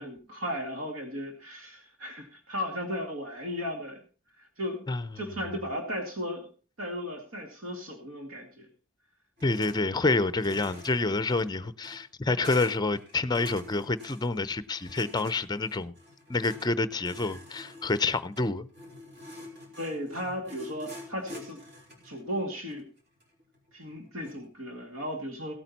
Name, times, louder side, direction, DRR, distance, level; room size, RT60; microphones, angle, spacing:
voice 1, 0.0-4.0 4.4-4.8 5.2-6.5 6.8-8.7 19.8-21.6 22.0-22.9 23.7-25.5, equal, 75° right, 2.2 m, -35 dB
voice 2, 9.4-16.0 16.3-18.7, left 3 dB, 20° left, 0.6 m, -28 dB
sound 1, 9.4-9.8 10.1-24.4, left 1 dB, 50° right, 4.6 m, -47 dB
17.0 x 8.9 x 4.1 m
head